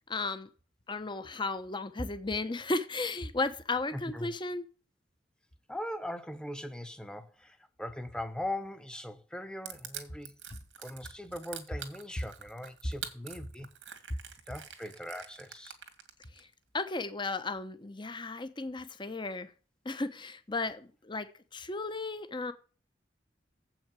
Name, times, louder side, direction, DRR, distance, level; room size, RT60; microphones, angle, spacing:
voice 1, 0.1-0.5 0.9-4.6 16.3-16.5 16.7-19.5 19.8-22.5, left 3 dB, 25° left, 0.9 m, -35 dB
voice 2, 3.9-4.3 5.7-10.3 10.8-13.7 14.5-15.7, left 1 dB, 5° left, 1.0 m, -40 dB
Crushing, 9.7-16.4, right 9 dB, 85° right, 2.0 m, -44 dB
7.9 x 5.9 x 7.5 m
head